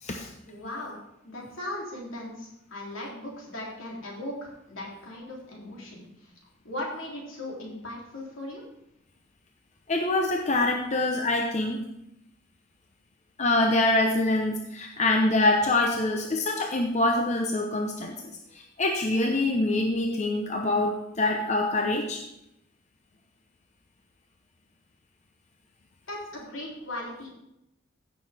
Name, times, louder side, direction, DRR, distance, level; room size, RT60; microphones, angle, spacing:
voice 1, 0.5-1.0 1.2-6.3 6.6-8.6 26.1-27.3, left 1 dB, 75° left, -3 dB, 3.1 m, -38 dB
voice 2, 9.9-11.8 13.4-18.2 18.5-22.2, left 2 dB, 35° left, 2 dB, 0.8 m, -25 dB
15.5 x 6.5 x 3.5 m, 0.85 s
head